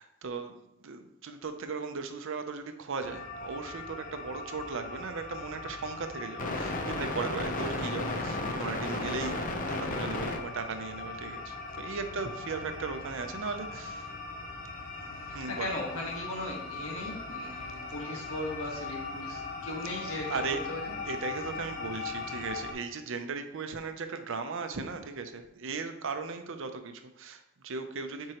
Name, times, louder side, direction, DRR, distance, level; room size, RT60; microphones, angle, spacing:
voice 1, 0.0-9.4 9.7-14.0 15.0-15.7 20.3-20.7 21.1-28.3, right 4 dB, 65° right, 8 dB, 0.6 m, -37 dB
sound 1, 3.0-22.7, left 2 dB, 40° left, 0.7 m, -37 dB
voice 2, 15.3-20.4 20.7-20.9, left 1 dB, 75° left, -2 dB, 1.7 m, -38 dB
7.6 x 4.6 x 3.0 m, 0.85 s
head